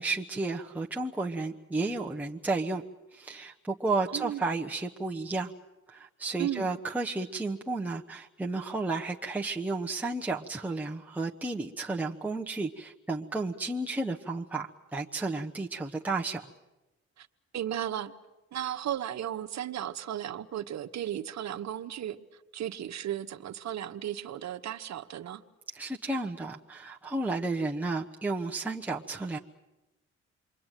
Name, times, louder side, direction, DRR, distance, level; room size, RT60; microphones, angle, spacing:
voice 1, 0.0-2.8 3.1-5.5 5.9-16.4 25.7-29.4, right 3 dB, 5° right, 1.2 m, -32 dB
voice 2, 4.1-4.4 6.4-6.7 17.2-17.3 17.5-18.1 18.5-22.2 22.5-25.4, right 11 dB, 60° right, 1.3 m, -35 dB
28.5 x 23.0 x 9.2 m
cardioid pair, 90°, 30 cm